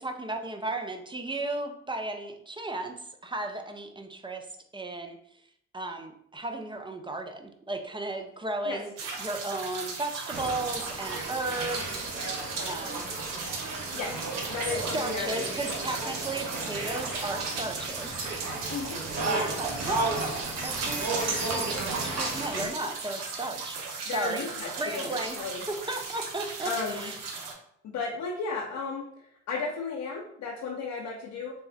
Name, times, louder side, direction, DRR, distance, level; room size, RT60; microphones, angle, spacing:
voice 1, 0.0-2.9 3.2-4.5 4.7-5.2 5.7-8.9 9.2-12.0 12.6-13.1 14.5-18.2 19.3-20.2 20.6-24.5 24.8-25.4 25.9-27.2, right 2 dB, 15° right, 5 dB, 0.5 m, -35 dB
sound 1, 9.0-27.5, right 4 dB, 80° right, 0.6 m, -37 dB
sound 2, 10.3-22.7, right 2 dB, 55° right, 1.1 m, -34 dB
voice 2, 13.9-15.5 15.8-15.9 18.7-19.4 24.1-25.6 26.6-27.1 27.8-31.5, left 4 dB, 65° left, -2 dB, 0.7 m, -34 dB
3.4 x 2.0 x 4.0 m, 0.71 s
hypercardioid pair, 45°, 32 cm